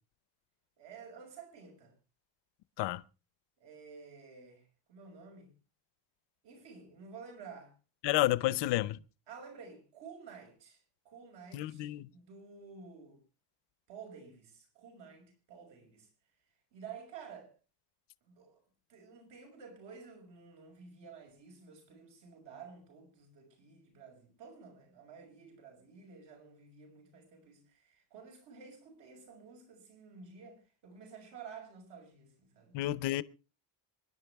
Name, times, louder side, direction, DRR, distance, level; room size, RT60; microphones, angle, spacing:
voice 1, 0.8-1.9 3.6-5.5 6.4-7.7 9.3-13.2 13.9-16.1 16.7-17.5 18.2-18.6 18.9-32.7, right 5 dB, 60° right, 6.3 m, -52 dB
voice 2, 8.0-9.0 11.5-12.1 32.7-33.2, left 16 dB, 60° left, 0.8 m, -30 dB
25.0 x 11.0 x 3.5 m
cardioid pair, 175°, 47 cm